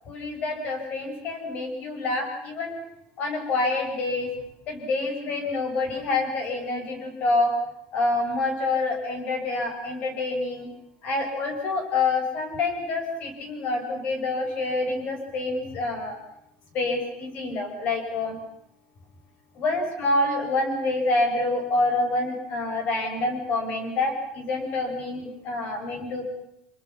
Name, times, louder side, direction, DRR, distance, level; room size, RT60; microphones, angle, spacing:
voice 1, 0.1-2.8 3.2-4.3 4.7-7.5 7.9-10.7 11.0-16.2 16.7-18.4 19.6-26.2, left 2 dB, 40° left, 3 dB, 7.0 m, -27 dB
28.0 x 25.0 x 5.9 m, 0.81 s
cardioid pair, 165°, 4 cm